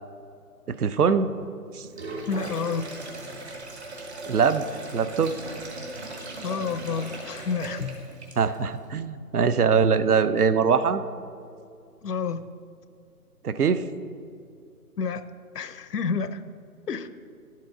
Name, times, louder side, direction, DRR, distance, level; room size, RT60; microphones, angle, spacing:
voice 1, 0.7-1.3 1.7-1.9 4.3-4.6 4.9-5.3 8.4-11.0 13.4-13.8, right 6 dB, 70° right, 12 dB, 0.6 m, -22 dB
Sink (filling or washing), 1.8-8.7, right 2 dB, 45° right, 1.3 m, -38 dB
voice 2, 2.3-2.9 6.4-8.1 12.0-12.5 15.0-15.3 15.5-16.4 16.9-17.1, left 5 dB, 80° left, 13 dB, 0.7 m, -29 dB
11.0 x 7.5 x 3.8 m, 2.4 s
figure-of-eight pair, 160°, 47 cm